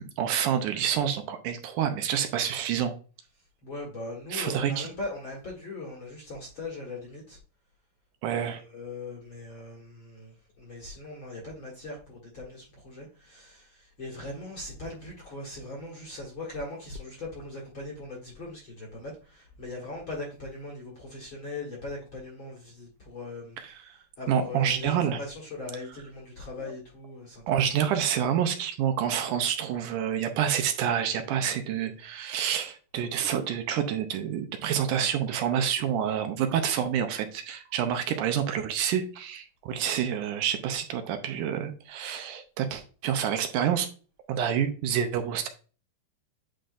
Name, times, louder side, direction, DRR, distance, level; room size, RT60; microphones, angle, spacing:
voice 1, 0.0-2.9 4.3-4.9 8.2-8.6 23.6-24.0 24.3-25.2 26.6-26.7 27.5-43.9 44.3-45.5, right 9 dB, 75° right, 2.0 m, -28 dB
voice 2, 3.6-7.4 8.3-23.9 24.2-27.9, left 2 dB, 45° left, 1.8 m, -40 dB
9.2 x 4.3 x 2.5 m
omnidirectional pair, 4.1 m